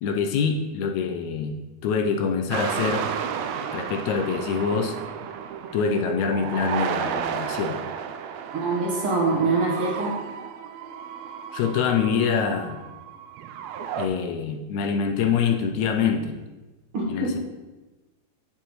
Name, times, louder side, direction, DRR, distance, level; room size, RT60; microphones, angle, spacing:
voice 1, 0.0-3.1 3.7-5.0 5.7-7.8 11.5-12.8 14.0-16.3 17.1-17.4, left 6 dB, 80° left, 5 dB, 1.9 m, -25 dB
sound 1, 2.5-14.1, right 7 dB, 80° right, 1.5 m, -32 dB
voice 2, 8.5-10.2 16.9-17.3, right 3 dB, 55° right, -3 dB, 1.8 m, -24 dB
9.6 x 7.4 x 3.1 m, 1.2 s
omnidirectional pair, 3.5 m